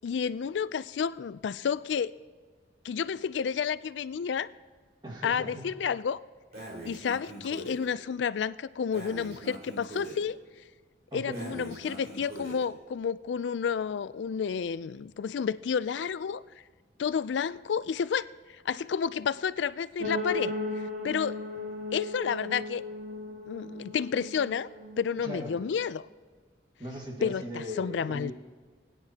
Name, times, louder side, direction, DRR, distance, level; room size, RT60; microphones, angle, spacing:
voice 1, 0.0-2.1 2.8-4.5 5.2-6.2 6.8-10.4 11.1-16.4 17.0-18.3 18.6-20.5 21.0-21.4 21.9-22.8 23.5-24.7 25.0-26.1 27.2-28.3, left 7 dB, 90° left, 17 dB, 0.4 m, -30 dB
voice 2, 5.0-5.7 11.1-11.5 25.2-25.6 26.8-28.3, equal, 25° right, 1 dB, 1.7 m, -38 dB
Breathing, 6.5-7.8 8.9-10.2 11.3-12.7, right 1 dB, 55° right, 3.6 m, -42 dB
sound 1, 20.0-25.9, left 2 dB, 85° right, 2.4 m, -36 dB
21.5 x 9.8 x 2.8 m, 1.5 s
head